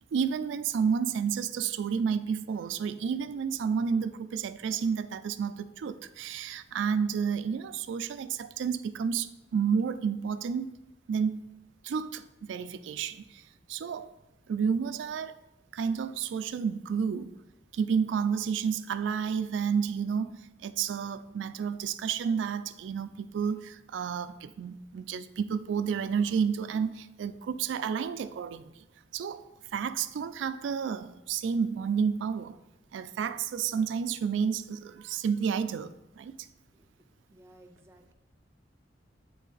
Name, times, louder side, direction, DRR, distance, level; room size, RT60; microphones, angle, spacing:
voice 1, 0.1-10.7 11.1-11.4 11.8-13.4 13.7-14.1 14.5-15.4 15.7-17.3 17.7-28.9 29.1-29.4 29.7-32.6 32.9-36.3, right 6 dB, 80° right, 0.3 m, -30 dB
voice 2, 37.3-38.1, right 1 dB, 15° right, 0.4 m, -56 dB
8.3 x 3.2 x 3.9 m
head